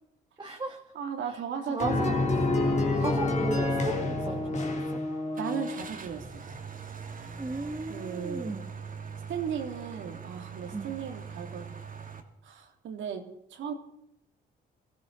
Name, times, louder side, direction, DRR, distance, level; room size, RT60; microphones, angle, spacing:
voice 1, 0.4-0.8 1.3-1.4 1.7-2.2 2.9-5.0 7.4-8.7 10.7-11.0, right 2 dB, 20° right, 1 dB, 2.1 m, -35 dB
voice 2, 0.9-2.2 5.4-6.5 7.9-8.5 9.3-11.7 12.4-13.2 13.5-13.7, right 7 dB, 75° right, 3 dB, 2.8 m, -36 dB
sound 1, 1.8-6.0, left 2 dB, 35° left, 3.0 m, -28 dB
Car / Engine starting, 5.3-12.2, right 6 dB, 45° right, 2.5 m, -42 dB
22.5 x 15.5 x 4.1 m, 0.75 s
cardioid pair, 90°, 20 cm